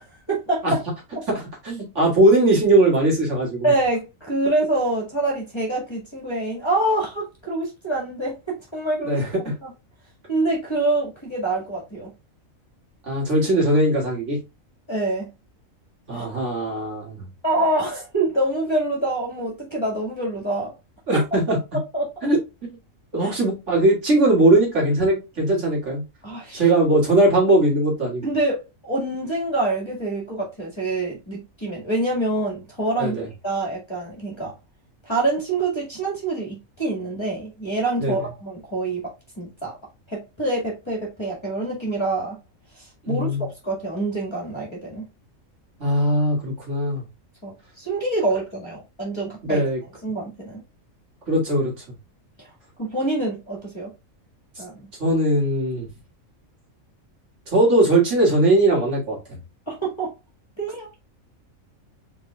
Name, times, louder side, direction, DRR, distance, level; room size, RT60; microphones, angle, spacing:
voice 1, 0.3-0.8 3.6-9.7 10.3-12.1 14.9-15.3 16.1-16.4 17.4-20.7 21.1-21.2 21.9-22.1 23.2-23.3 26.2-26.7 28.2-33.1 33.4-34.5 35.1-39.0 39.4-39.7 40.1-42.3 42.8-45.0 47.4-49.6 50.0-50.6 52.4-52.5 52.8-53.9 54.6-54.9 59.7-60.1 60.6-60.9, right 2 dB, 20° left, 1.7 m, -26 dB
voice 2, 1.3-3.7 9.0-9.5 13.1-14.4 16.1-17.3 21.1-21.6 22.2-22.4 23.1-26.0 26.5-28.3 33.0-33.3 38.0-38.2 43.1-43.5 45.8-47.0 49.4-49.8 51.3-51.7 55.0-55.9 57.5-59.2, right 1 dB, 60° right, 2.3 m, -20 dB
5.1 x 3.8 x 2.2 m
omnidirectional pair, 1.4 m